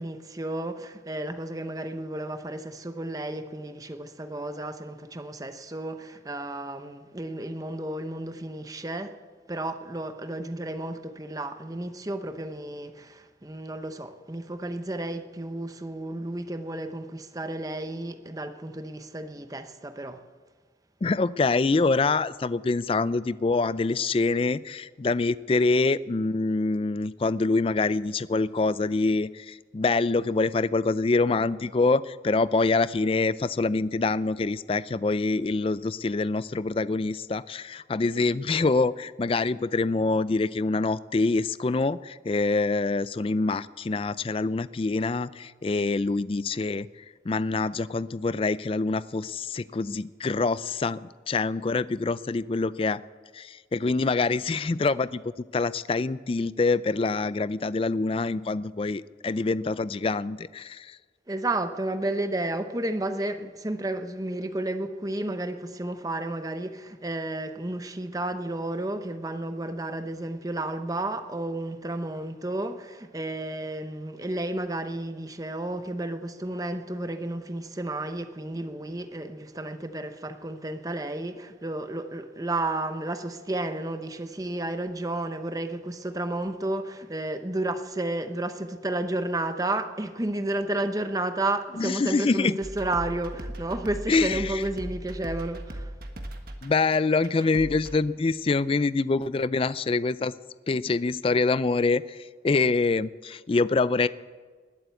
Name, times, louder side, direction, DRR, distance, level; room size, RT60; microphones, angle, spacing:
voice 1, 0.0-9.2 9.5-20.2 61.3-95.9, right 1 dB, 20° right, 0.8 m, -32 dB
voice 2, 21.0-51.0 51.3-53.0 53.3-61.0 91.8-92.6 94.1-94.6 96.6-100.3 100.7-104.1, left 3 dB, 30° left, 0.4 m, -25 dB
sound 1, 92.6-97.9, right 1 dB, 55° right, 1.5 m, -38 dB
20.0 x 7.8 x 8.3 m
head